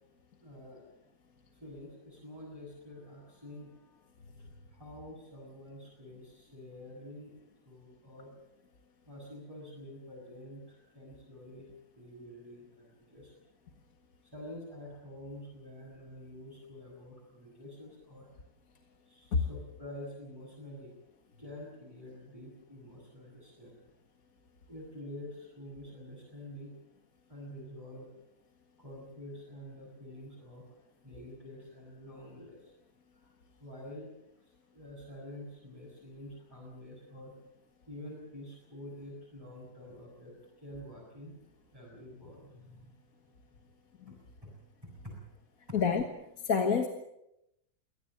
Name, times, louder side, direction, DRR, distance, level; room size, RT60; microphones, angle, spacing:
voice 1, 0.4-0.8 1.6-4.0 4.4-7.4 7.6-8.3 9.1-11.7 12.0-13.3 14.2-18.3 19.1-20.9 21.4-23.7 24.7-26.7 27.3-28.1 28.8-30.8 31.0-32.7 33.1-33.3 33.6-37.3 37.9-41.3 41.6-42.9 44.1-44.2 44.4-44.5 44.8-45.2 45.7-45.8, left 1 dB, 15° right, -6 dB, 7.1 m, -48 dB
voice 2, 46.5-46.9, left 5 dB, 60° left, 5 dB, 1.9 m, -27 dB
23.5 x 17.5 x 7.7 m, 0.83 s
omnidirectional pair, 1.8 m